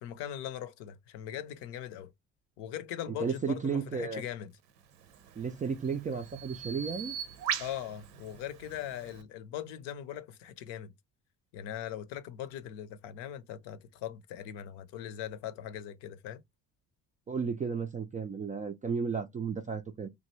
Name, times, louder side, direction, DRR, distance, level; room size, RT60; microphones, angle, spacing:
voice 1, 0.0-2.1 2.6-4.5 7.6-10.9 11.5-16.4, left 11 dB, 60° left, 0.7 m, -40 dB
voice 2, 3.1-4.2 5.4-7.2 17.3-20.1, right 5 dB, 20° right, 0.3 m, -33 dB
Bird vocalization bird call bird song, 5.0-9.2, right 9 dB, 80° right, 0.7 m, -40 dB
3.1 x 2.6 x 3.0 m
hypercardioid pair, 55°, 47 cm